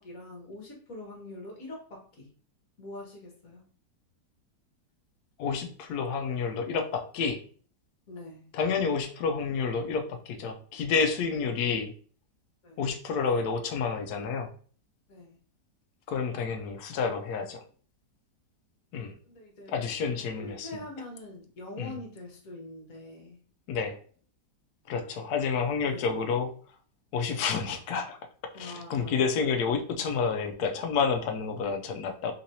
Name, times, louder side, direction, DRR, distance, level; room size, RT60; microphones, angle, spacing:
voice 1, 0.0-2.3 2.8-3.6 8.1-8.5 11.6-11.7 12.6-12.9 15.1-15.4 19.2-19.8 20.4-23.4 25.9-26.3 28.5-29.3, left 2 dB, 55° left, 0 dB, 1.5 m, -44 dB
voice 2, 5.4-7.4 8.5-11.9 12.8-14.5 16.1-17.6 18.9-19.1 19.7-20.8 21.8-21.9 23.7-24.0 24.9-26.5 27.1-28.2 28.6-32.3, left 5 dB, 70° left, 6 dB, 1.1 m, -29 dB
3.8 x 2.9 x 2.6 m, 0.43 s
omnidirectional pair, 1.8 m